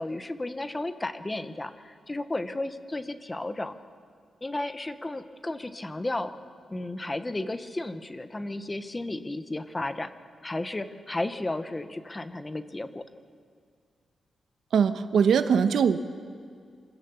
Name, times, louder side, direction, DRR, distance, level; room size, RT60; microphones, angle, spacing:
voice 1, 0.0-3.8 4.4-6.3 6.7-10.1 10.4-13.0, left 2 dB, 15° left, 10 dB, 0.8 m, -33 dB
voice 2, 14.7-16.0, right 7 dB, 70° right, 10 dB, 0.9 m, -21 dB
27.0 x 16.0 x 6.9 m, 2.2 s
wide cardioid pair, 170°, 0 cm